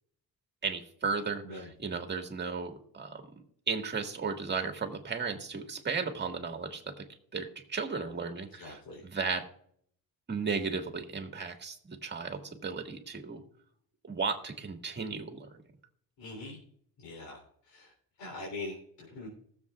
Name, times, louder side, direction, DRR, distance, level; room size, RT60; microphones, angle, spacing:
voice 1, 0.6-7.1 7.3-9.5 10.3-13.4 14.0-15.6, right 5 dB, 30° right, 4 dB, 1.8 m, -35 dB
voice 2, 1.4-1.7 8.6-9.0 16.2-16.6 17.0-17.4 17.7-17.9 18.2-19.3, left 2 dB, 70° left, -2 dB, 3.6 m, -42 dB
20.0 x 7.4 x 2.4 m, 0.64 s
cardioid pair, 120°, 36 cm